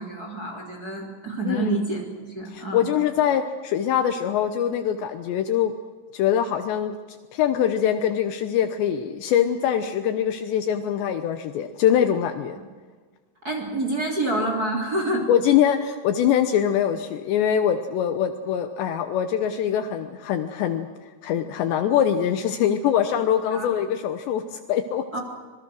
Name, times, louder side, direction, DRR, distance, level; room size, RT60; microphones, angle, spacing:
voice 1, 0.0-2.0 2.3-2.9 13.4-15.3 23.5-23.7 25.1-25.2, right 2 dB, 25° right, 2 dB, 2.7 m, -27 dB
voice 2, 1.5-1.8 2.5-5.7 6.1-7.0 7.3-12.6 15.3-20.9 21.2-25.2, left 9 dB, 75° left, 8 dB, 2.8 m, -23 dB
25.5 x 22.5 x 6.3 m, 1.4 s
omnidirectional pair, 5.8 m